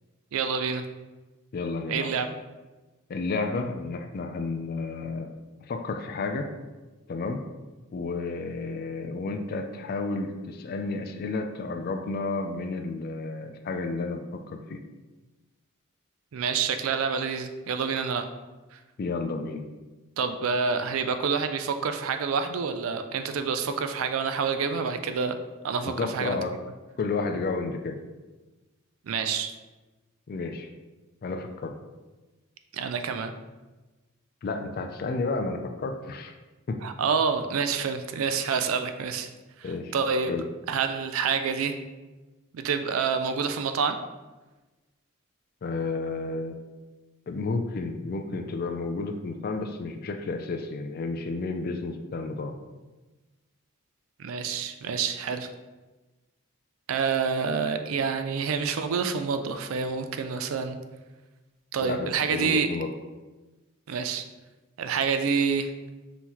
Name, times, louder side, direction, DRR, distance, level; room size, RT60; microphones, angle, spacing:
voice 1, 0.3-0.8 1.9-2.3 16.3-18.3 18.7-18.8 20.2-25.4 25.6-26.4 29.1-29.5 32.7-33.3 36.8-39.3 39.6-40.3 40.7-41.8 42.5-44.0 54.2-55.5 56.9-60.8 61.7-62.7 63.9-64.2 64.8-65.7, right 5 dB, 85° right, 8 dB, 0.4 m, -27 dB
voice 2, 1.5-2.1 3.1-5.3 5.7-6.5 7.1-7.4 7.9-14.8 19.0-19.6 25.8-26.5 27.0-28.0 30.3-30.7 31.2-31.7 34.4-36.3 36.7-36.8 39.6-39.9 40.3-40.4 45.6-46.6 47.3-52.6 61.8-62.9, left 3 dB, 45° left, 6 dB, 0.3 m, -31 dB
5.5 x 2.9 x 3.0 m, 1.2 s
head